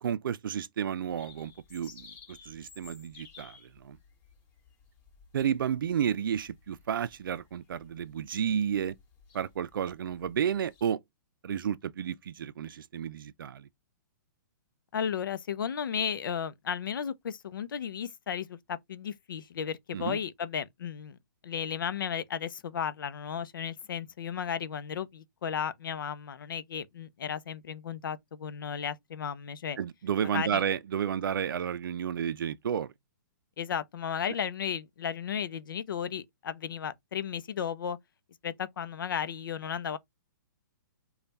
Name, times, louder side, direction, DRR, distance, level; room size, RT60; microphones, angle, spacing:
voice 1, 0.0-4.0 5.3-9.0 9.3-11.0 11.4-13.7 19.9-20.2 29.8-32.9, right 8 dB, 85° right, 0.4 m, -32 dB
sound 1, 1.1-10.8, left 5 dB, 15° left, 1.7 m, -56 dB
voice 2, 14.9-21.2 21.4-29.8 30.3-30.6 33.6-38.0 38.4-40.0, left 8 dB, 80° left, 0.6 m, -34 dB
3.3 x 2.3 x 4.0 m
hypercardioid pair, 165°, 11 cm